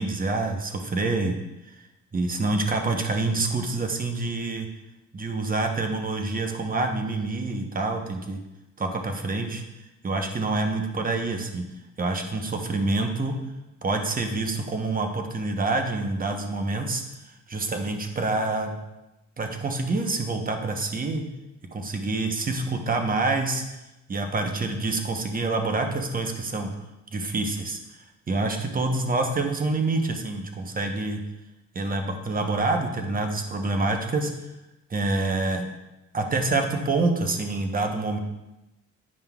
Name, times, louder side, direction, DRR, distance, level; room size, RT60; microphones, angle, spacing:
voice 1, 0.0-1.4 1.7-1.8 2.1-4.7 5.1-8.4 8.8-9.6 10.0-11.7 12.0-13.3 13.8-17.0 17.5-18.7 19.4-21.3 21.7-23.6 24.1-26.7 27.1-31.2 31.7-34.5 34.9-35.7 36.1-38.2, right 3 dB, 30° right, 4 dB, 0.9 m, -27 dB
9.7 x 5.3 x 2.3 m, 0.98 s
cardioid pair, 90°, 30 cm